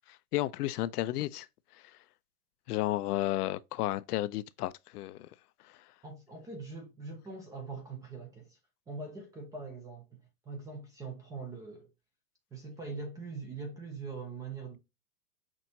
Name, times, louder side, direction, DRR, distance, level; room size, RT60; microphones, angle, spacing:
voice 1, 0.1-2.1 2.7-6.0, left 15 dB, 70° left, 0.5 m, -34 dB
voice 2, 6.0-8.6 8.9-10.2 10.5-11.9 12.5-14.8, right 4 dB, 10° right, 0.4 m, -42 dB
6.0 x 2.6 x 2.7 m
hypercardioid pair, 125°, 48 cm